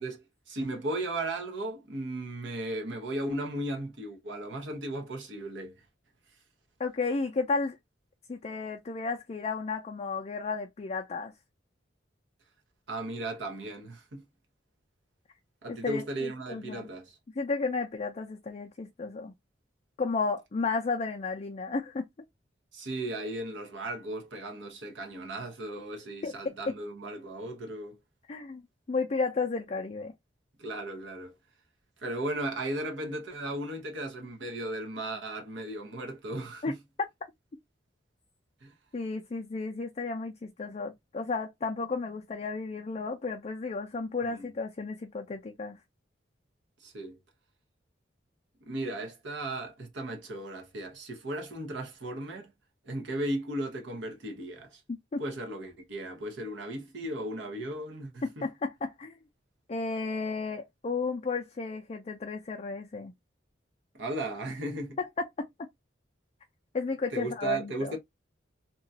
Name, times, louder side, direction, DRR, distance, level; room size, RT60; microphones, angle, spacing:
voice 1, 0.5-5.8 12.9-14.2 15.6-17.2 22.7-28.0 30.6-31.3 32.0-36.8 38.6-38.7 44.3-44.5 46.8-47.2 48.6-52.5 52.8-54.8 55.2-58.5 63.9-65.0 67.1-68.0, right 1 dB, 75° right, 0.9 m, -36 dB
voice 2, 6.8-7.8 8.3-11.3 15.7-16.9 17.4-19.3 20.0-22.1 26.2-26.7 28.3-30.1 36.6-36.7 38.9-45.8 54.9-55.2 58.2-59.1 59.7-63.1 65.0-65.5 66.7-68.0, left 4 dB, 35° left, 0.4 m, -33 dB
2.9 x 2.3 x 2.6 m
head